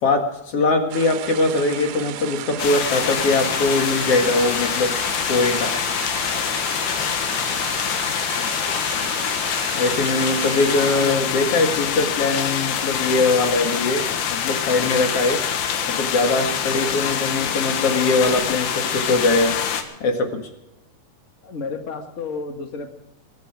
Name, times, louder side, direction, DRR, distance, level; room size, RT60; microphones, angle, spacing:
voice 1, 0.0-4.9 5.3-5.7 9.7-15.4 15.9-19.6 20.0-20.4, left 3 dB, 45° left, 5 dB, 2.3 m, -21 dB
sound 1, 0.9-11.2, right 13 dB, 90° right, 2.6 m, -34 dB
sound 2, 2.6-19.8, left 8 dB, 85° left, 3.4 m, -25 dB
voice 2, 8.3-8.7 9.0-9.1 10.5-11.2 21.4-22.9, left 4 dB, 70° left, 5 dB, 0.7 m, -33 dB
22.5 x 11.5 x 4.8 m, 0.89 s
omnidirectional pair, 4.3 m